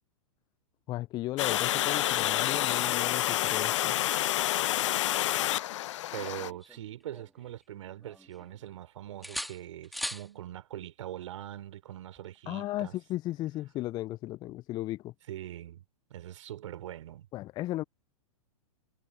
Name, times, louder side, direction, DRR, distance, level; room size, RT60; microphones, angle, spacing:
voice 1, 0.9-4.0 12.5-15.1 17.3-17.8, left 16 dB, 25° left, 0.4 m, -35 dB
Water, 1.4-6.5, left 14 dB, 55° left, 0.9 m, -28 dB
sound 1, 6.1-7.6 8.0-8.8 9.2-10.3 12.2-12.4, equal, ahead, 2.2 m, -41 dB
voice 2, 6.1-12.9 15.3-15.8 16.1-17.3, right 12 dB, 60° right, 5.1 m, -42 dB
figure-of-eight pair, 110°, 18 cm